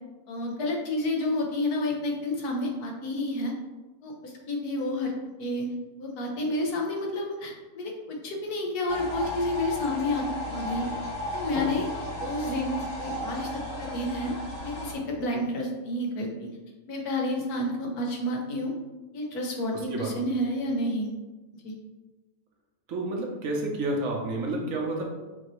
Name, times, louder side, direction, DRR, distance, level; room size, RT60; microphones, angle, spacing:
voice 1, 0.3-3.5 4.0-5.1 5.4-5.7 6.0-10.9 11.3-11.9 12.2-13.5 13.8-14.3 14.6-16.5 16.9-18.7 19.1-21.1 21.6-21.7, left 1 dB, 90° left, 0 dB, 1.4 m, -30 dB
sound 1, 8.9-14.9, left 1 dB, 60° left, 1.7 m, -34 dB
voice 2, 22.9-25.0, right 2 dB, 65° right, 0 dB, 1.2 m, -30 dB
6.3 x 2.7 x 3.0 m, 1.2 s
omnidirectional pair, 1.6 m